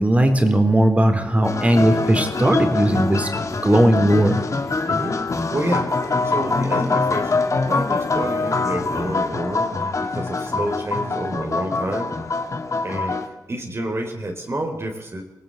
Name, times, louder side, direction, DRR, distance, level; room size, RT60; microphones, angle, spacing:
voice 1, 0.0-3.3 3.6-4.4, right 1 dB, 20° right, 7 dB, 4.1 m, -17 dB
sound 1, 1.4-13.3, left 3 dB, 50° left, 2.3 m, -24 dB
voice 2, 4.9-5.2 5.5-7.3 7.6-12.1 12.8-13.2 13.5-15.2, right 1 dB, 40° right, 3 dB, 4.0 m, -29 dB
24.5 x 18.0 x 8.7 m, 1.0 s
wide cardioid pair, 85°, 7 cm